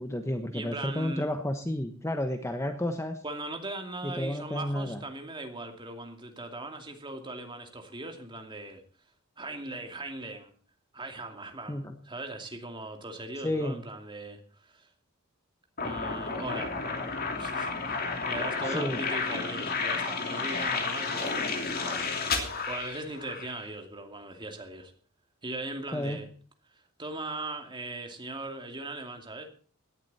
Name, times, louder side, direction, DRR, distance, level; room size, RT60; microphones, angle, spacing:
voice 1, 0.0-3.2 4.0-5.0 11.7-11.9 13.4-13.8 18.6-19.0 25.9-26.2, left 1 dB, 15° left, 1.1 m, -31 dB
voice 2, 0.5-1.3 3.2-8.8 9.4-10.5 10.9-14.9 15.8-16.8 17.4-24.9 25.4-26.3 27.0-29.5, right 2 dB, 20° right, 2.6 m, -39 dB
sound 1, 15.8-23.6, left 4 dB, 45° left, 2.9 m, -32 dB
18.0 x 11.5 x 4.2 m
head